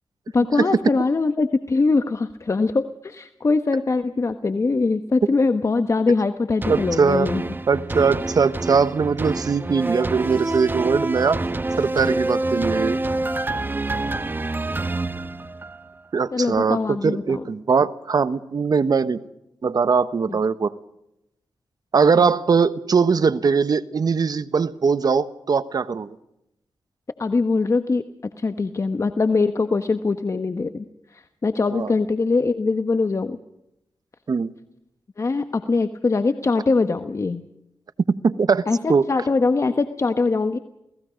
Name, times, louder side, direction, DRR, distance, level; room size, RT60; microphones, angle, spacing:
voice 1, 0.3-7.4 16.3-17.4 20.3-20.4 27.2-28.0 28.4-30.8 31.1-33.4 35.2-37.5 38.7-40.6, left 3 dB, 40° left, 9 dB, 1.2 m, -22 dB
sound 1, 6.6-16.0 16.5-16.6, right 2 dB, 25° right, 1.1 m, -27 dB
voice 2, 6.7-7.3 7.7-11.4 11.8-13.0 16.1-19.2 19.6-20.7 21.9-26.1 31.7-31.9 34.3-34.5 38.1-38.6 38.9-39.1, right 5 dB, 60° right, 13 dB, 1.1 m, -21 dB
29.0 x 18.5 x 5.2 m, 0.84 s
cardioid pair, 75°, 8 cm